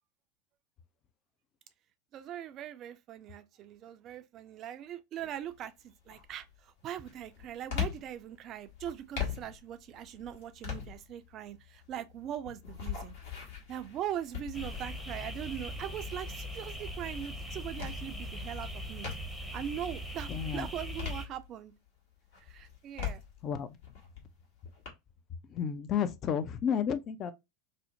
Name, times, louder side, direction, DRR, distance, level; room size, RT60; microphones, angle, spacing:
voice 1, 2.1-5.7 6.1-13.2 13.7-19.1 19.5-21.7 22.5-23.2, right 10 dB, 40° right, 0.4 m, -41 dB
sound 1, 5.2-5.6 6.1-19.6 20.0-21.9 22.3-24.9, left 8 dB, 60° left, 1.0 m, -42 dB
sound 2, 14.5-21.3, equal, 10° left, 0.7 m, -40 dB
voice 2, 20.3-20.7 23.4-23.7 25.5-27.3, left 8 dB, 35° left, 0.4 m, -31 dB
2.6 x 2.0 x 2.7 m
figure-of-eight pair, 85°, 0 cm